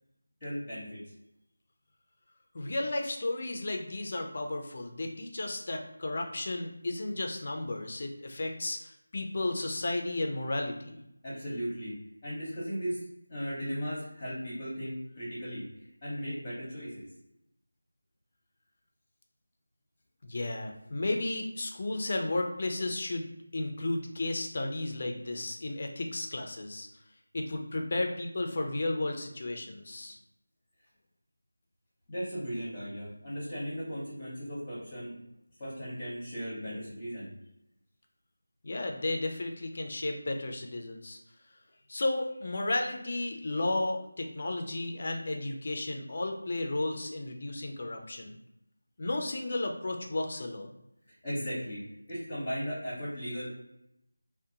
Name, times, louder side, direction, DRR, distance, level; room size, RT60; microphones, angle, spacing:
voice 1, 0.4-1.0 11.2-11.9 12.2-13.0 13.3-15.6 16.0-17.1 32.1-35.1 35.6-37.3 51.2-51.8 52.1-53.4, equal, 20° left, -9 dB, 0.8 m, -36 dB
voice 2, 2.5-11.0 20.2-26.9 27.3-30.2 38.6-41.2 41.9-48.3 49.0-50.7, left 2 dB, 40° left, 3 dB, 0.4 m, -33 dB
2.5 x 2.1 x 2.7 m, 0.81 s
figure-of-eight pair, 170°, 0 cm